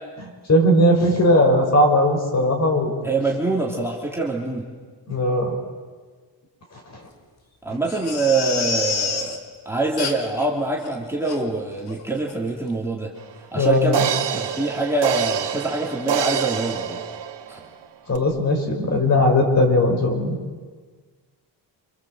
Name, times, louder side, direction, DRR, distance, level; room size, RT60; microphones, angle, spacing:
voice 1, 0.5-2.9 5.1-5.5 13.6-13.9 18.1-20.4, left 1 dB, 35° left, 2 dB, 5.5 m, -18 dB
voice 2, 3.0-4.7 7.6-9.4 9.6-13.1 13.5-14.0 14.3-17.0 17.5-17.6, right 3 dB, 5° right, -3 dB, 3.0 m, -24 dB
Crying sobbing, 7.9-9.4 10.0-10.4 10.8-10.9 11.3-11.4 11.9-12.0 12.3-12.4, left 5 dB, 60° left, 2.8 m, -27 dB
sound 1, 13.2-13.3 13.9-17.7 18.1-18.2, right 8 dB, 70° right, 1.7 m, -26 dB
28.0 x 27.0 x 7.8 m, 1.5 s
wide cardioid pair, 160°, 43 cm